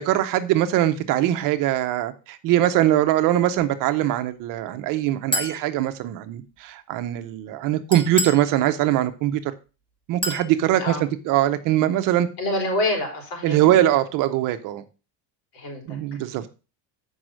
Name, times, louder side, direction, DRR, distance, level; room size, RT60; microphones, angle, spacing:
voice 1, 0.0-9.4 10.1-11.0 11.3-12.3 13.4-14.8 15.9-16.5, right 13 dB, 50° right, 0.8 m, -22 dB
Chink clink, 5.3-5.6 7.9-8.5 10.2-10.5, left 1 dB, 10° left, 1.5 m, -27 dB
voice 2, 10.7-11.0 12.4-13.8 15.5-16.0, left 1 dB, 60° left, 4.2 m, -27 dB
7.7 x 5.5 x 6.2 m
cardioid pair, 175°, 42 cm